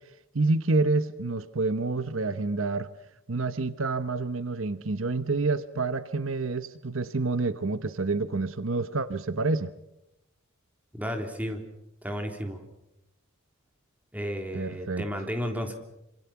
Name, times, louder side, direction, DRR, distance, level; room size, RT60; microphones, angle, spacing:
voice 1, 0.3-2.9 3.3-9.7 14.5-15.0, right 3 dB, 70° right, 13 dB, 1.0 m, -28 dB
voice 2, 10.9-11.6 12.0-12.6 14.1-15.7, equal, 5° right, 4 dB, 3.4 m, -33 dB
27.0 x 26.5 x 5.9 m, 0.87 s
head